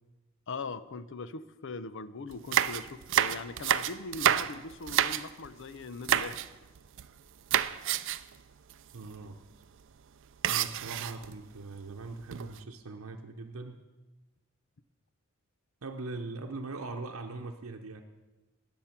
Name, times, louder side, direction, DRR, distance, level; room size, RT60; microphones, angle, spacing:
voice 1, 0.5-6.4, left 4 dB, 60° left, 14 dB, 0.6 m, -40 dB
sound 1, 2.3-5.5 6.0-6.5 6.8-7.2 7.5-8.3 8.7-8.8 9.0-9.2 10.4-11.3 12.0-12.6, right 10 dB, 60° right, 0.5 m, -29 dB
voice 2, 8.9-9.4 10.5-13.8 15.8-18.0, right 3 dB, 85° right, 3 dB, 0.8 m, -41 dB
19.5 x 7.2 x 5.9 m, 1.2 s
head